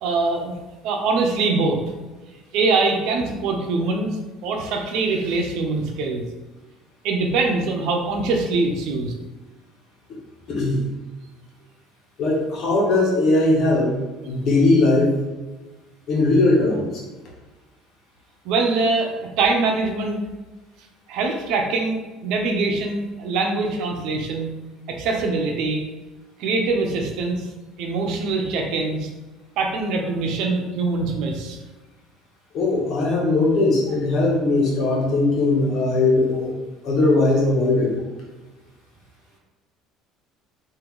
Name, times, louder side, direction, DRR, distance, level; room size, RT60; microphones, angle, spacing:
voice 1, 0.0-0.5 0.8-1.8 2.5-4.1 4.4-6.2 7.0-9.1 18.4-20.2 21.1-24.5 24.9-25.8 26.4-27.4 27.8-29.1 29.6-31.6, right 3 dB, 70° right, 2 dB, 0.8 m, -23 dB
voice 2, 10.5-10.8 12.2-14.0 14.2-15.2 16.1-16.9 32.5-36.5 36.8-38.0, left 2 dB, 55° left, -2 dB, 1.5 m, -19 dB
3.8 x 2.9 x 4.8 m, 1.2 s
supercardioid pair, 105°, 0 cm